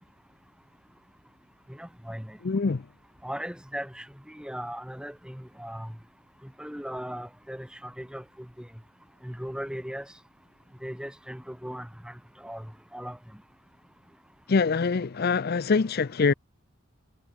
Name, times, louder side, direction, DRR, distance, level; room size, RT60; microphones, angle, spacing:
voice 1, 1.7-2.4 3.2-5.9 6.6-8.7 9.2-10.1 10.8-12.1 12.4-12.7 12.9-13.2, equal, 5° right, 4.5 m, -38 dB
voice 2, 2.4-2.8 14.5-16.3, left 4 dB, 50° left, 0.5 m, -24 dB
head